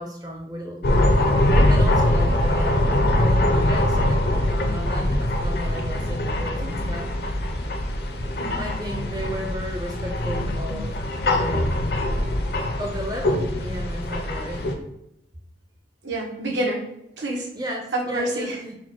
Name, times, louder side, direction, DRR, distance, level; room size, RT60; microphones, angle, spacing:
voice 1, 0.0-2.8 3.1-7.1 8.5-10.9 11.2-11.8 12.8-14.7 16.5-16.6 17.6-18.8, equal, 20° right, 1 dB, 0.5 m, -34 dB
sound 1, 0.8-14.7, left 1 dB, 60° left, 0.5 m, -22 dB
voice 2, 16.0-16.9 17.2-17.5 17.9-18.6, right 1 dB, 80° right, -1 dB, 1.1 m, -27 dB
4.3 x 2.2 x 4.5 m, 0.82 s
head